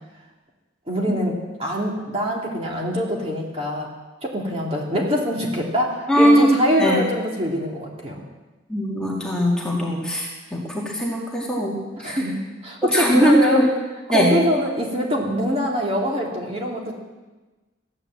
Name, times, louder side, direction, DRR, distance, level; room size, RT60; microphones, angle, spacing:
voice 1, 0.9-3.9 4.2-8.2 12.0-13.7 14.1-16.9, equal, 30° right, -1 dB, 2.4 m, -24 dB
voice 2, 6.1-6.5 6.8-7.0 8.7-12.2 12.9-13.7 14.1-14.3, equal, 5° left, -4 dB, 2.0 m, -20 dB
14.0 x 10.0 x 7.6 m, 1.2 s
head